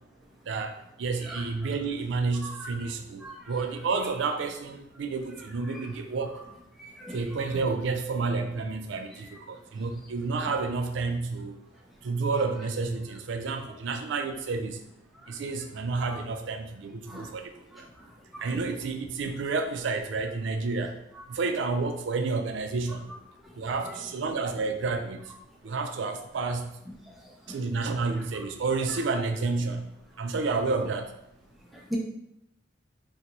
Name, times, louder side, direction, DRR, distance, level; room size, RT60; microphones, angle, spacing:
voice 1, 0.5-6.4 7.1-11.5 12.0-14.8 15.3-17.9 18.4-21.0 21.3-23.1 23.6-25.2 25.6-26.7 27.5-29.9 30.2-31.1, right 4 dB, 65° right, 7 dB, 0.4 m, -30 dB
voice 2, 3.2-3.5 6.8-7.2 16.1-16.2 17.1-17.3 17.7-17.8 18.3-18.4 23.8-24.0 27.5-27.6 31.9-32.0, right 1 dB, ahead, -2 dB, 0.4 m, -39 dB
3.8 x 2.2 x 2.9 m, 0.82 s
head